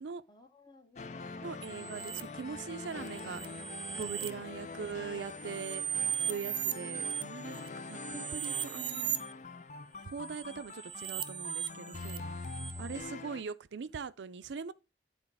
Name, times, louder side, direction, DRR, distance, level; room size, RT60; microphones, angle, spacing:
voice 1, 0.3-1.9 4.2-5.1 12.7-13.3, left 3 dB, 25° left, 1.1 m, -58 dB
sound 1, 1.0-13.4, left 3 dB, 40° left, 0.4 m, -44 dB
voice 2, 1.4-3.4 4.0-5.8 6.3-7.6 7.9-9.2 10.0-14.7, right 5 dB, 90° right, 0.5 m, -41 dB
sound 2, 1.6-2.2 2.9-4.3 4.8-9.3 10.2-13.0, right 9 dB, 30° right, 0.5 m, -38 dB
9.9 x 3.9 x 4.7 m
head